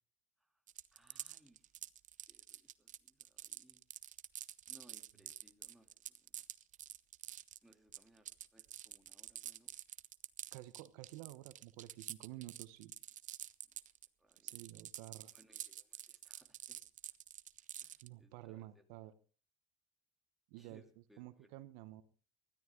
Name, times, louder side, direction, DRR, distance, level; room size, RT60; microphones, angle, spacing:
sound 1, 0.7-14.1 14.3-18.1, right 11 dB, 50° right, 0.7 m, -48 dB
voice 1, 0.9-1.9 2.3-3.8 4.7-6.4 7.6-9.7 14.2-14.6 15.3-16.8 17.8-18.8 20.6-21.6, right 1 dB, ahead, 4 dB, 2.8 m, -68 dB
voice 2, 10.5-12.9 14.4-15.3 18.0-19.1 20.5-20.8 21.2-22.0, right 16 dB, 80° right, 14 dB, 0.9 m, -51 dB
20.0 x 13.5 x 3.7 m, 0.38 s
supercardioid pair, 85°, 17 cm